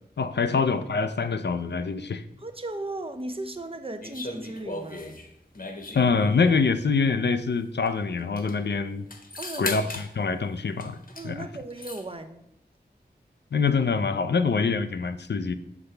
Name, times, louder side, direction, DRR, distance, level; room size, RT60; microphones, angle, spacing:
voice 1, 0.2-2.2 5.9-9.1 9.6-11.0 11.2-11.5 13.5-15.5, left 5 dB, 75° left, 11 dB, 0.5 m, -25 dB
voice 2, 2.4-5.3 9.4-9.8 11.1-12.4, right 2 dB, 30° right, 7 dB, 0.7 m, -36 dB
sound 1, 4.0-6.8 7.9-8.0 8.2-8.6 9.1-10.1 10.8-11.3 11.5-12.1, left 2 dB, 55° left, 1.0 m, -37 dB
6.6 x 6.0 x 3.3 m, 0.80 s
wide cardioid pair, 50°, 18 cm